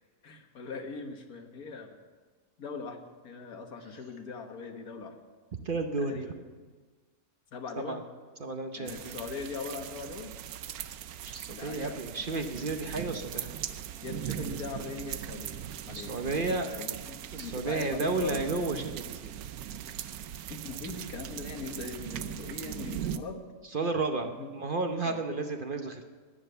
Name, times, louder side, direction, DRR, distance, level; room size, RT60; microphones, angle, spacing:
voice 1, 0.2-2.0 2.6-5.2 6.0-6.4 7.5-8.1 8.8-10.4 11.5-12.1 14.0-18.4 20.5-23.4 23.8-23.9 24.4-24.5 25.0-25.2, left 4 dB, 90° left, 5 dB, 1.8 m, -40 dB
voice 2, 5.6-6.3 7.7-8.0 8.4-9.2 11.2-13.6 15.9-16.7 17.3-19.3 23.7-26.0, right 3 dB, 45° right, 6 dB, 0.9 m, -32 dB
sound 1, 8.9-23.2, right 10 dB, 85° right, 1.1 m, -39 dB
12.0 x 10.5 x 7.9 m, 1.4 s
omnidirectional pair, 1.5 m